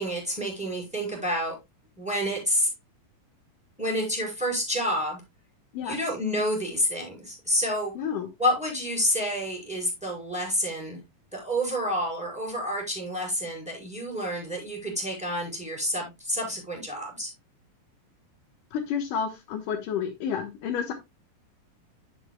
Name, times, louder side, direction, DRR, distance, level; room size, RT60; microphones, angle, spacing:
voice 1, 0.0-1.5 1.9-2.7 3.8-5.2 5.8-7.9 8.4-11.0 11.3-17.3, equal, ahead, 0 dB, 4.8 m, -29 dB
voice 2, 8.0-8.3 18.7-20.9, left 7 dB, 75° left, 5 dB, 2.7 m, -30 dB
11.0 x 8.3 x 2.2 m, 0.21 s
omnidirectional pair, 4.0 m